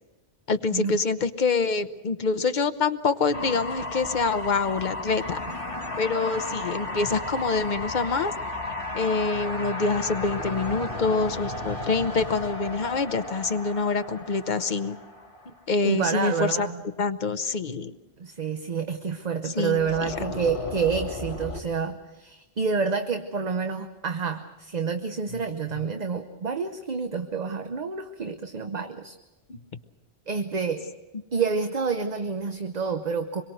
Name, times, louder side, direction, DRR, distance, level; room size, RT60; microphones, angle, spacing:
voice 1, 0.5-5.4 6.0-8.3 8.9-15.0 15.5-16.7 17.0-17.9 19.4-19.9 29.5-29.6, left 4 dB, 45° left, 10 dB, 1.0 m, -26 dB
sound 1, 3.3-15.6 19.7-21.6, left 2 dB, 30° left, 2.3 m, -34 dB
voice 2, 15.8-16.8 18.2-29.2 30.3-30.9 31.3-33.4, right 5 dB, 40° right, 8 dB, 1.0 m, -28 dB
25.5 x 22.5 x 6.4 m, 1.1 s
omnidirectional pair, 1.1 m